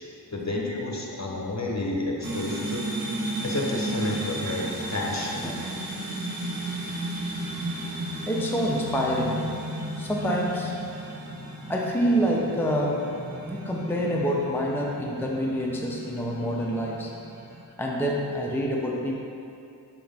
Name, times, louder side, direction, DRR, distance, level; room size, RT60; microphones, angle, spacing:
voice 1, 0.3-3.1 3.4-5.4, left 2 dB, 40° left, -1 dB, 1.1 m, -30 dB
sound 1, 2.2-17.6, right 1 dB, 55° right, 1.1 m, -34 dB
voice 2, 5.4-5.8 8.3-9.5 10.0-10.7 11.7-17.1 17.8-19.1, equal, 5° left, -2 dB, 0.7 m, -27 dB
6.1 x 5.8 x 3.6 m, 2.6 s
cardioid pair, 40°, 41 cm